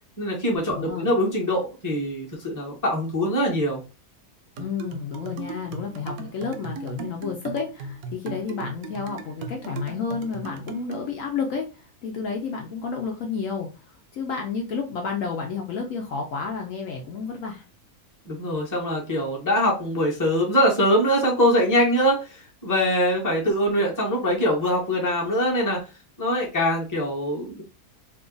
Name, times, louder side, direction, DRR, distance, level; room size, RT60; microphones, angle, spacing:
voice 1, 0.2-3.8 18.3-22.3 22.6-25.8 26.2-27.6, equal, 15° left, -2 dB, 0.9 m, -23 dB
voice 2, 0.7-1.1 4.6-17.6, left 5 dB, 65° left, 2 dB, 1.0 m, -31 dB
sound 1, 4.6-11.1, right 3 dB, 80° right, 1.0 m, -37 dB
2.8 x 2.4 x 3.8 m, 0.30 s
omnidirectional pair, 1.5 m